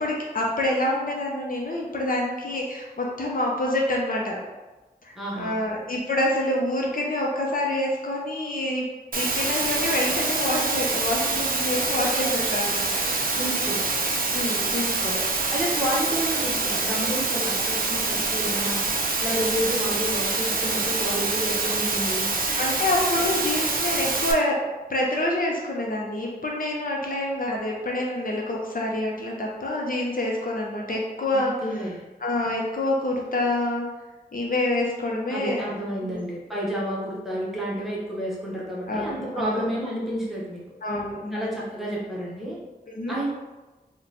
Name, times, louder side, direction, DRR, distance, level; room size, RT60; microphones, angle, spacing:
voice 1, 0.0-4.4 5.0-8.9 9.2-13.0 14.3-15.2 22.6-24.6 24.9-31.5 32.2-33.8 34.3-35.6 36.0-36.2 36.5-36.6 38.9-39.7 40.8-41.6 42.9-43.2, left 1 dB, 60° left, -2 dB, 0.6 m, -27 dB
voice 2, 5.2-5.6 13.3-13.8 15.5-18.8 19.2-22.3 31.3-32.0 35.3-40.6 41.3-42.6 43.1-43.3, equal, ahead, -6 dB, 0.9 m, -30 dB
Water, 9.1-24.3, right 3 dB, 60° right, 0.5 m, -25 dB
3.0 x 2.1 x 3.9 m, 1.2 s
wide cardioid pair, 65°, 16 cm